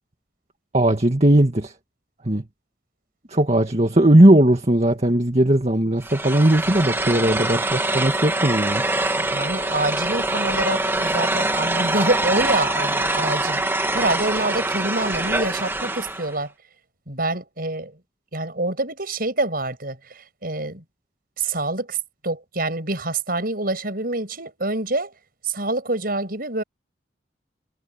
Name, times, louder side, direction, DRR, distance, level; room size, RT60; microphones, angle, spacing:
voice 1, 0.7-1.7 2.2-2.4 3.3-8.8, right 1 dB, 35° right, 2.0 m, -18 dB
sound 1, 6.0-16.3, right 2 dB, 10° right, 1.9 m, -24 dB
voice 2, 7.1-7.5 9.2-13.6 13.9-16.5 17.1-18.0 18.3-20.8 21.4-22.0 22.2-25.1 25.4-26.6, right 2 dB, 50° right, 7.5 m, -26 dB
head